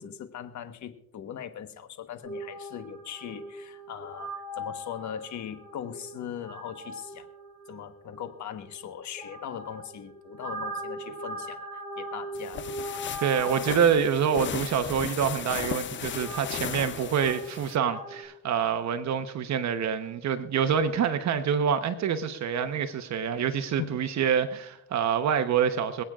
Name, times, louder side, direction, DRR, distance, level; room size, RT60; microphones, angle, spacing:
voice 1, 0.0-7.3 7.7-12.6 23.8-24.0, left 9 dB, 70° left, 1.3 m, -40 dB
sound 1, 2.2-18.2, right 1 dB, 5° left, 5.9 m, -41 dB
sound 2, 12.3-17.8, left 9 dB, 40° left, 0.5 m, -36 dB
voice 2, 13.2-26.0, right 7 dB, 65° right, 1.0 m, -26 dB
26.5 x 8.9 x 2.4 m
cardioid pair, 90°, 30 cm